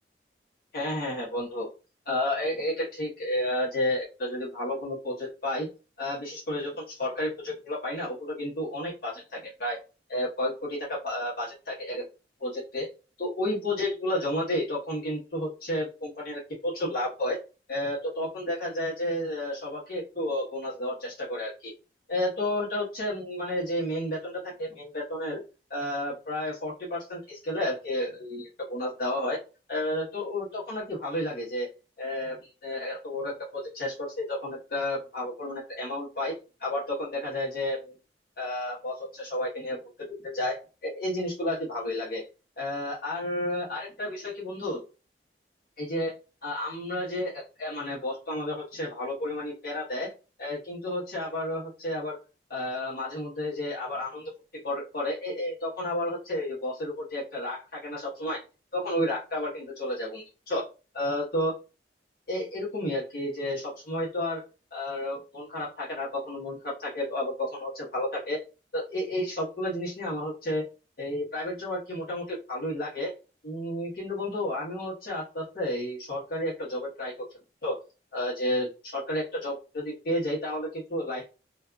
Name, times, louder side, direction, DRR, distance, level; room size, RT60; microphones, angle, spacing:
voice 1, 0.7-1.7 2.1-5.7 6.0-9.8 10.1-12.0 12.4-12.9 13.2-17.4 17.7-21.7 22.1-25.4 25.7-29.4 29.7-31.7 32.0-38.0 38.4-39.8 40.2-42.2 42.6-44.8 45.8-46.1 46.4-50.1 50.4-52.2 52.5-58.4 58.7-60.6 60.9-61.6 62.3-64.4 64.7-68.4 68.7-70.6 71.0-73.1 73.4-77.1 77.6-77.8 78.1-81.3, left 1 dB, 55° left, -5 dB, 1.0 m, -31 dB
2.6 x 2.3 x 2.4 m, 0.31 s
head